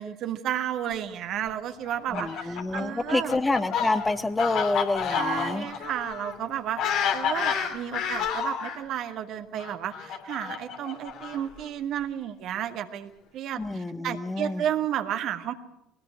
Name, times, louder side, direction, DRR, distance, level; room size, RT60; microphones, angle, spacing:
voice 1, 0.0-3.3 5.1-15.5, right 10 dB, 55° right, 8 dB, 1.8 m, -32 dB
Fowl, 1.9-8.8 9.6-11.6, left 7 dB, 60° left, 2.9 m, -30 dB
voice 2, 2.1-5.7 13.6-14.6, left 2 dB, 15° left, 10 dB, 1.5 m, -28 dB
21.0 x 18.5 x 7.8 m, 0.83 s
hypercardioid pair, 65°, 0 cm